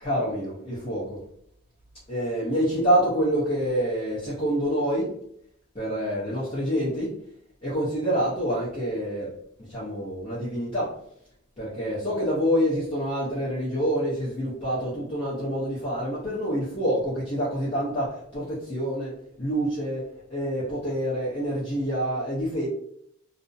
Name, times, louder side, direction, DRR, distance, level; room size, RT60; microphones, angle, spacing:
voice 1, 0.0-1.2 2.1-5.1 5.8-7.1 7.6-9.3 9.7-10.9 11.6-18.4 18.7-19.1 19.4-20.0 20.3-22.7, equal, 25° left, -10 dB, 0.8 m, -27 dB
2.5 x 2.1 x 2.6 m, 0.70 s
head